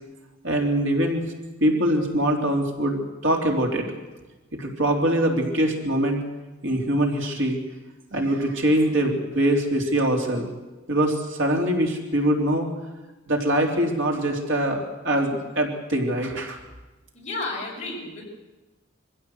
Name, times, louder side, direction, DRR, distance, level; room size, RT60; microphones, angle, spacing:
voice 1, 0.4-1.2 1.6-3.9 4.5-6.2 6.6-7.6 8.1-10.5 10.9-12.7 13.3-16.6, right 1 dB, 80° right, 1 dB, 3.5 m, -23 dB
voice 2, 17.1-18.3, left 3 dB, 40° left, -2 dB, 5.9 m, -32 dB
23.5 x 15.5 x 8.0 m, 1.1 s
head